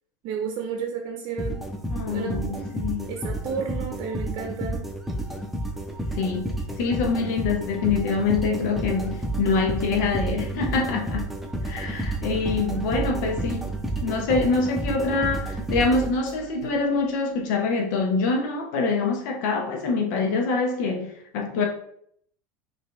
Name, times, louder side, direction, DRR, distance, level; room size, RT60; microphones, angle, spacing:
voice 1, 0.2-1.7 2.1-2.7 3.1-4.9 12.9-13.3, right 6 dB, 55° right, 3 dB, 0.7 m, -32 dB
sound 1, 1.4-16.6, right 1 dB, ahead, 0.7 m, -30 dB
voice 2, 1.9-3.1 6.1-11.3 11.6-13.7 14.0-21.7, left 4 dB, 70° left, 1 dB, 0.8 m, -25 dB
5.4 x 2.8 x 3.1 m, 0.66 s
supercardioid pair, 110°, 10 cm